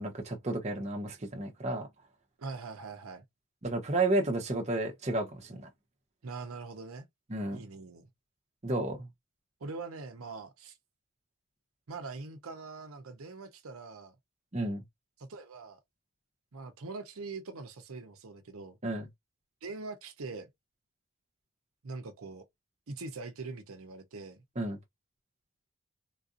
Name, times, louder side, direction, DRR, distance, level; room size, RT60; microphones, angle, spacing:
voice 1, 0.0-1.9 3.6-5.7 7.3-7.6 8.6-9.1 14.5-14.8 18.8-19.1 24.6-24.8, right 2 dB, 30° right, 0.8 m, -32 dB
voice 2, 2.4-3.2 6.2-7.1 7.5-8.1 9.6-10.8 11.9-14.1 15.2-15.8 16.5-18.8 19.6-20.5 21.8-22.4 22.9-24.4, right 3 dB, 75° right, 0.7 m, -42 dB
3.8 x 2.5 x 2.5 m
head